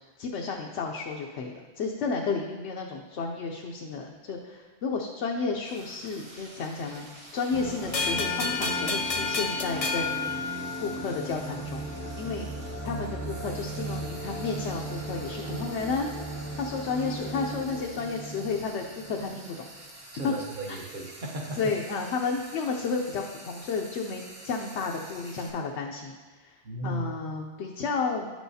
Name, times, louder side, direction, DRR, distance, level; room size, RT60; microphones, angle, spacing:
voice 1, 0.2-7.1 7.3-10.3 10.8-11.9 12.2-12.5 12.8-16.1 16.6-19.5 20.2-20.3 20.7-20.8 21.6-26.6 26.8-28.3, left 4 dB, 75° left, 1 dB, 0.9 m, -32 dB
Frying (food), 5.6-25.5, right 1 dB, 65° right, 1.5 m, -48 dB
sound 1, 7.5-19.4, right 2 dB, 15° right, 0.6 m, -37 dB
sound 2, 7.9-11.2, left 4 dB, 45° left, 0.5 m, -30 dB
voice 2, 20.1-21.6 26.6-27.1, right 1 dB, 50° right, 0 dB, 1.1 m, -36 dB
9.7 x 6.2 x 2.7 m, 1.3 s
omnidirectional pair, 1.2 m